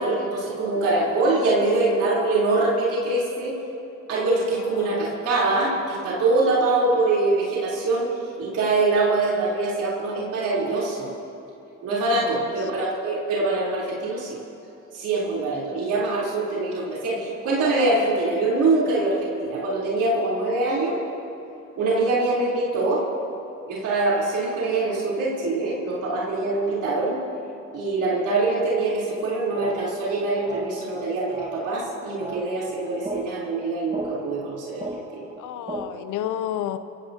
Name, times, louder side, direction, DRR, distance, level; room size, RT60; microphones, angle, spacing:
voice 1, 0.0-3.6 4.1-11.1 11.8-14.4 14.9-21.0 21.8-23.0 23.7-27.2 27.7-35.2, right 2 dB, 85° right, -7 dB, 3.6 m, -24 dB
voice 2, 4.5-5.0 12.1-12.5 22.0-22.1 35.4-36.8, left 11 dB, 85° left, 12 dB, 0.7 m, -32 dB
sound 1, 29.1-36.1, right 2 dB, 20° right, 1.5 m, -38 dB
25.0 x 16.0 x 2.8 m, 2.8 s
cardioid pair, 90°, 30 cm